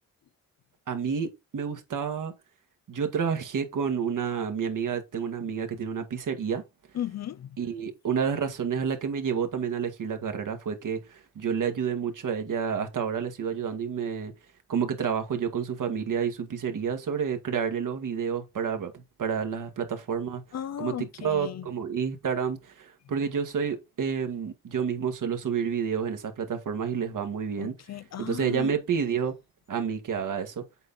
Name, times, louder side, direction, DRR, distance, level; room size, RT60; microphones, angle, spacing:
voice 1, 0.9-2.3 2.9-6.6 7.6-14.3 14.7-20.4 20.8-27.7 28.2-29.3 29.7-30.6, right 7 dB, 65° right, 1.8 m, -29 dB
voice 2, 6.9-7.6 20.5-21.7 27.6-28.7, left 10 dB, 50° left, 0.5 m, -36 dB
8.0 x 4.3 x 4.0 m
cardioid pair, 70°, 35 cm